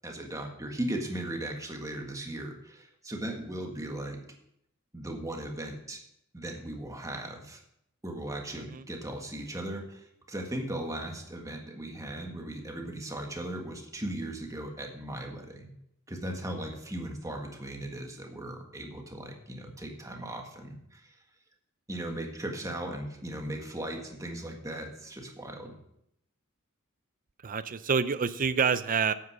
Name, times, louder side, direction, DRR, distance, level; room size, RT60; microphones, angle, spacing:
voice 1, 0.0-4.2 4.9-6.0 6.3-7.6 8.0-15.7 16.1-21.0 21.9-25.7, right 1 dB, 15° right, 2 dB, 1.6 m, -37 dB
voice 2, 27.4-29.1, right 6 dB, 40° right, 14 dB, 0.5 m, -27 dB
9.3 x 8.4 x 6.2 m, 0.77 s
head